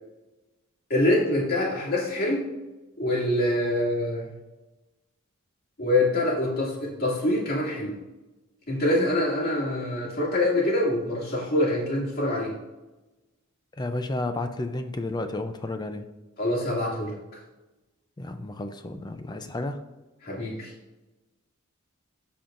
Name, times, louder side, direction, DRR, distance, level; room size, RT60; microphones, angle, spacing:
voice 1, 0.9-2.5 3.0-4.3 5.8-8.0 8.7-12.5 16.4-17.1 20.2-20.7, left 1 dB, 45° left, -5 dB, 2.4 m, -25 dB
voice 2, 13.8-16.0 18.2-19.8, left 2 dB, 20° left, 8 dB, 0.4 m, -32 dB
13.0 x 4.4 x 2.5 m, 1.1 s
head